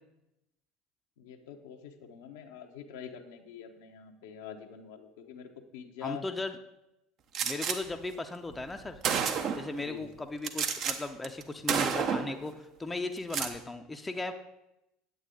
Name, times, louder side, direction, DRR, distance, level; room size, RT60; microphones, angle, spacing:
voice 1, 1.2-6.2 9.8-10.1, left 8 dB, 70° left, 4 dB, 0.9 m, -45 dB
voice 2, 6.0-6.6 7.4-9.0 9.5-14.3, left 2 dB, 15° left, 6 dB, 0.6 m, -37 dB
Gunshot gunfire, 7.3-7.8 8.6-8.7 9.0-9.7 10.4-11.0 11.2-11.4 11.7-12.4 13.2-13.5, right 7 dB, 50° right, 0.8 m, -30 dB
9.1 x 8.1 x 3.8 m, 0.89 s
figure-of-eight pair, 70°, 0 cm